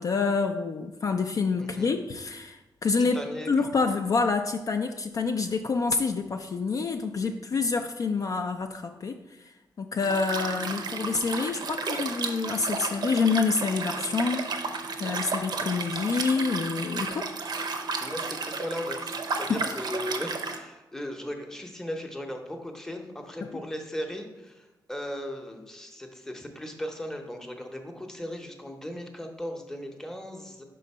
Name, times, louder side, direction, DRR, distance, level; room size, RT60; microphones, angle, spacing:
voice 1, 0.0-3.2 3.5-9.2 9.8-14.4 15.0-17.3 19.6-19.7 23.4-23.5, left 4 dB, 45° left, 5 dB, 0.3 m, -27 dB
voice 2, 1.6-1.9 3.0-3.5 18.0-30.6, left 1 dB, 5° left, 3 dB, 0.7 m, -37 dB
Liquid, 10.0-20.6, right 4 dB, 65° right, 0.6 m, -33 dB
5.1 x 3.8 x 5.4 m, 1.0 s
wide cardioid pair, 120°, 8 cm